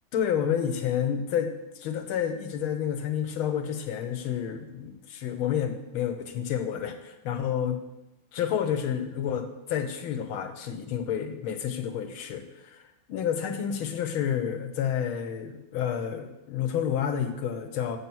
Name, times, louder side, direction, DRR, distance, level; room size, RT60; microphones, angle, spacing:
voice 1, 0.1-7.8 8.3-18.0, left 8 dB, 85° left, 7 dB, 1.8 m, -30 dB
7.3 x 7.0 x 6.2 m, 0.95 s
omnidirectional pair, 2.3 m